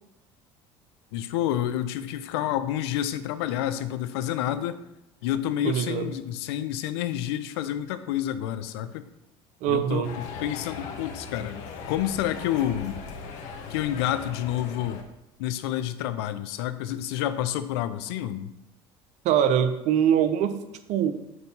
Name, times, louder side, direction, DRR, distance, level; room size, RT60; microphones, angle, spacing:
voice 1, 1.1-4.8 5.2-9.0 9.7-13.0 13.7-15.0 15.4-18.5, left 11 dB, 85° left, 12 dB, 0.5 m, -29 dB
voice 2, 5.6-6.1 9.6-10.1 19.2-20.6 20.9-21.1, right 9 dB, 65° right, 10 dB, 0.6 m, -23 dB
sound 1, 10.0-15.0, left 5 dB, 65° left, 1.0 m, -39 dB
7.9 x 2.8 x 5.4 m, 0.88 s
supercardioid pair, 85°, 13 cm